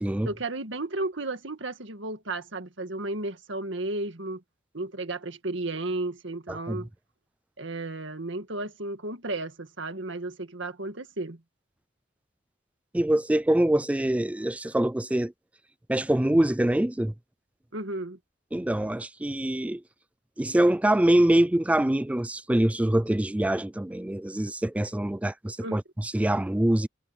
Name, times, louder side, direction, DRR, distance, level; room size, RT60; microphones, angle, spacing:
voice 1, 0.3-4.4 4.7-6.9 7.6-11.4 17.7-18.2 25.6-25.8, right 2 dB, 70° right, 2.0 m, -33 dB
voice 2, 6.5-6.8 12.9-15.3 15.9-17.1 18.5-19.8 20.4-26.9, right 1 dB, 5° right, 0.3 m, -24 dB
head